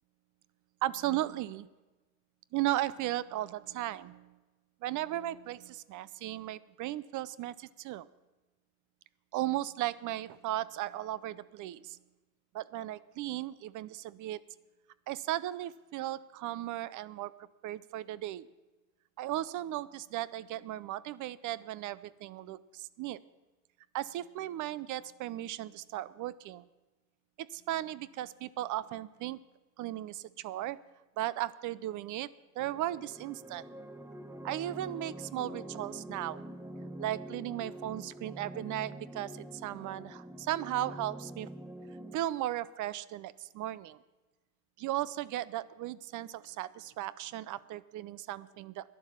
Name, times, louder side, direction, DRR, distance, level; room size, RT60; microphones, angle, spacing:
voice 1, 0.8-1.7 2.5-4.4 4.8-8.1 9.3-12.0 12.5-14.4 15.1-17.3 17.6-18.5 19.2-23.2 23.9-26.7 27.5-29.4 29.8-30.8 31.2-32.3 32.6-33.6 34.4-36.4 37.0-41.5 42.1-44.0 44.8-48.9, right 14 dB, 75° right, 19 dB, 0.6 m, -36 dB
sound 1, 32.6-42.2, right 1 dB, 10° right, 0.8 m, -45 dB
11.5 x 10.5 x 7.3 m, 1.1 s
cardioid pair, 135°, 31 cm